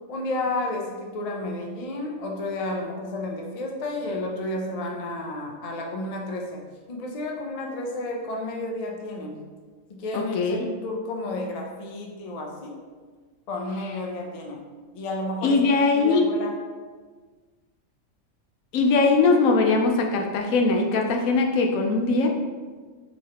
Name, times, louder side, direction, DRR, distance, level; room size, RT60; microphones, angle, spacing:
voice 1, 0.1-6.6 6.9-9.4 9.9-12.8 13.5-14.6 14.9-15.6 16.0-16.5, left 2 dB, 60° left, 0 dB, 0.4 m, -31 dB
voice 2, 10.1-10.7 15.4-16.3 18.7-22.3, left 3 dB, 80° left, 2 dB, 1.0 m, -21 dB
4.8 x 3.1 x 2.8 m, 1.5 s
omnidirectional pair, 1.4 m